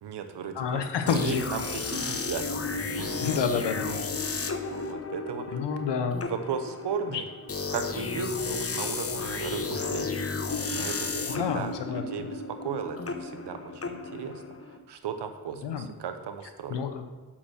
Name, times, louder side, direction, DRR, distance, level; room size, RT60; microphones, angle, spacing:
voice 1, 0.0-2.5 3.0-3.3 4.7-5.9 6.2-7.3 7.7-10.2 10.7-16.8, right 7 dB, 75° right, 8 dB, 0.9 m, -36 dB
voice 2, 0.5-1.4 3.2-4.0 5.5-6.3 7.1-7.2 11.3-12.0 15.6-15.9 16.7-17.0, left 6 dB, 85° left, 7 dB, 0.9 m, -29 dB
sound 1, 1.1-14.8, left 4 dB, 35° left, 0.9 m, -33 dB
6.1 x 6.0 x 6.3 m, 1.3 s
cardioid pair, 50°, 41 cm